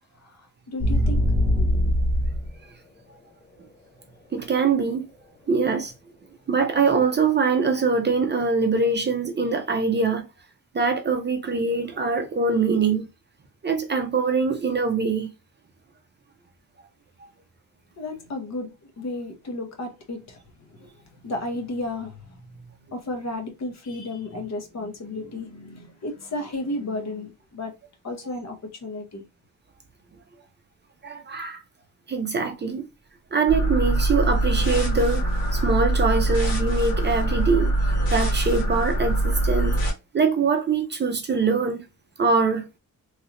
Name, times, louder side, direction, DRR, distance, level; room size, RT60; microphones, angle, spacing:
voice 1, 0.1-1.4 18.0-27.7 28.0-29.2, left 2 dB, 50° left, 0.9 m, -33 dB
sound 1, 0.8-2.5, equal, 20° left, 0.4 m, -21 dB
voice 2, 4.3-5.1 5.5-5.9 6.5-10.3 10.7-13.1 13.6-15.3 31.0-31.6 32.1-32.9 33.3-35.2 35.5-39.8 40.1-41.9 42.2-42.7, right 4 dB, 30° right, 0.5 m, -23 dB
sound 2, 33.5-39.9, right 1 dB, 85° left, 1.8 m, -23 dB
3.2 x 2.6 x 2.8 m
wide cardioid pair, 170°, 35 cm